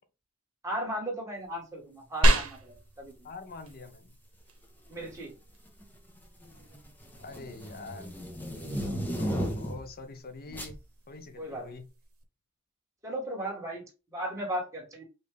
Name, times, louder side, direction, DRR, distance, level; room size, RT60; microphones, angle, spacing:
voice 1, 0.6-3.3 4.9-5.3 10.5-10.6 11.4-11.8 13.0-15.0, right 1 dB, 15° right, 1.9 m, -36 dB
sound 1, 2.2-12.2, right 1 dB, 80° right, 1.0 m, -33 dB
voice 2, 3.2-4.2 7.2-8.1 9.1-10.8 11.1-11.8, left 3 dB, 45° left, 0.7 m, -44 dB
sound 2, 3.6-3.9 4.9-5.3 5.7-9.9 10.5-10.8, equal, 10° left, 1.0 m, -35 dB
5.2 x 2.7 x 3.3 m
head